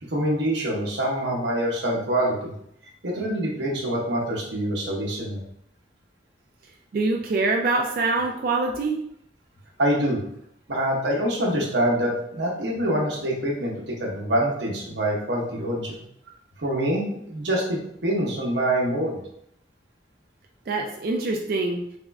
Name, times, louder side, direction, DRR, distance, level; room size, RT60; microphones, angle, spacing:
voice 1, 0.0-2.5 3.0-5.4 9.8-10.2 10.7-16.0 16.6-19.2, right 1 dB, 80° right, -2 dB, 0.9 m, -25 dB
voice 2, 6.9-9.0 20.7-21.8, right 3 dB, 55° right, 1 dB, 0.3 m, -24 dB
3.5 x 2.1 x 3.4 m, 0.72 s
head